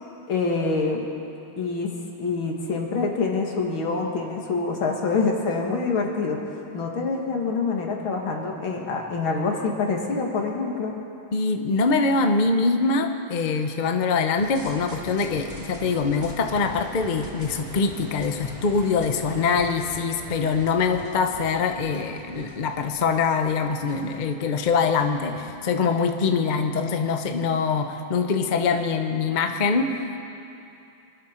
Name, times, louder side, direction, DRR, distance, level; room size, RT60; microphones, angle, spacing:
voice 1, 0.3-1.0 1.6-1.9 2.2-6.4 6.7-10.9, left 4 dB, 80° left, 1 dB, 2.6 m, -26 dB
voice 2, 11.3-30.0, left 4 dB, 60° left, 6 dB, 0.4 m, -24 dB
sound 1, 14.4-25.6, right 1 dB, 35° right, 2.1 m, -42 dB
25.5 x 12.0 x 4.4 m, 2.7 s
omnidirectional pair, 2.2 m